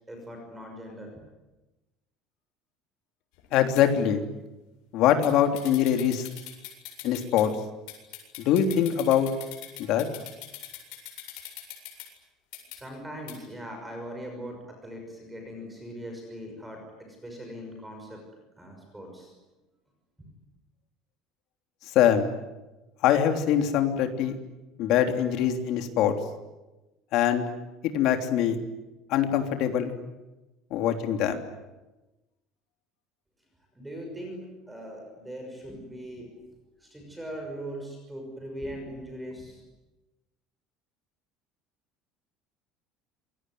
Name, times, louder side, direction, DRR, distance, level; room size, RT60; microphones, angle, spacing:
voice 1, 0.1-1.1 12.7-16.8 17.1-18.2 18.6-19.3 33.8-34.4 34.7-36.3 36.8-39.6, equal, 5° right, 3 dB, 6.1 m, -40 dB
sound 1, 3.4-3.8 5.2-5.3 5.6-7.4 7.9-12.1 12.5-12.8 13.3-13.4, left 13 dB, 70° left, 7.8 m, -42 dB
voice 2, 3.5-4.2 4.9-6.3 7.0-7.5 8.4-9.3 9.8-10.1 21.9-22.3 23.0-24.4 24.8-26.1 27.1-27.5 27.9-28.5 29.1-29.9 30.7-31.4, left 9 dB, 50° left, 6 dB, 3.2 m, -23 dB
28.0 x 22.0 x 9.5 m, 1.1 s
cardioid pair, 175°, 0 cm